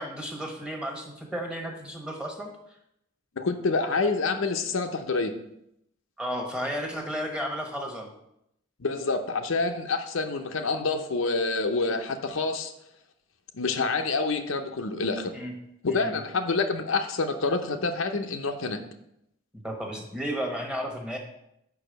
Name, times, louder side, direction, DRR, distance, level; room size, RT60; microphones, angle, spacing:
voice 1, 0.0-2.5 6.2-8.1 15.3-15.6 15.9-16.2 19.6-21.2, equal, 5° right, 1 dB, 1.0 m, -33 dB
voice 2, 3.4-5.3 8.8-12.7 13.5-15.3 15.8-18.8, left 3 dB, 80° left, 6 dB, 0.7 m, -27 dB
5.4 x 4.8 x 6.5 m, 0.79 s
head